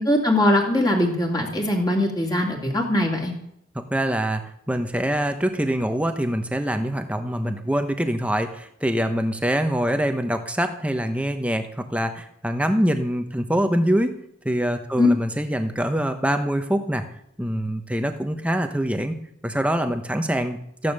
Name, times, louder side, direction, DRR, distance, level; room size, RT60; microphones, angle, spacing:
voice 1, 0.0-3.3 15.0-15.1, left 1 dB, 20° left, 0 dB, 2.8 m, -21 dB
voice 2, 3.7-14.1 14.4-17.0 17.4-19.2 19.4-20.9, equal, 5° right, 7 dB, 1.1 m, -24 dB
14.5 x 10.5 x 6.8 m, 0.74 s
head